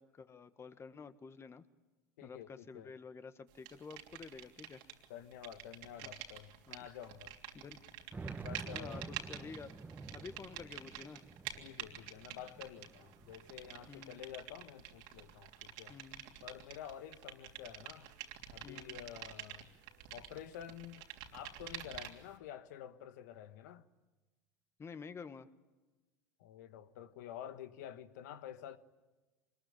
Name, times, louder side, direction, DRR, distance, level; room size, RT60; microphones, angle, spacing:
voice 1, 0.0-1.6 2.2-4.8 6.0-6.1 6.7-6.9 7.5-7.8 8.7-9.7 10.1-11.2 13.9-14.2 15.9-16.2 18.6-19.0 24.8-25.5, left 5 dB, 30° left, 1.6 m, -50 dB
voice 2, 2.2-2.9 5.1-7.4 8.4-9.1 11.6-15.9 16.4-18.1 18.5-19.7 20.1-21.1 21.3-23.8 26.4-28.8, left 10 dB, 80° left, 1.4 m, -49 dB
sound 1, 3.7-5.1 5.3-22.3, right 10 dB, 70° right, 3.2 m, -49 dB
sound 2, 4.2-4.3 4.5-4.6 5.4-5.5 6.0-6.1 7.8-14.1 14.6-15.5, right 4 dB, 20° right, 1.7 m, -50 dB
24.5 x 21.5 x 9.0 m
hypercardioid pair, 90°, 9 cm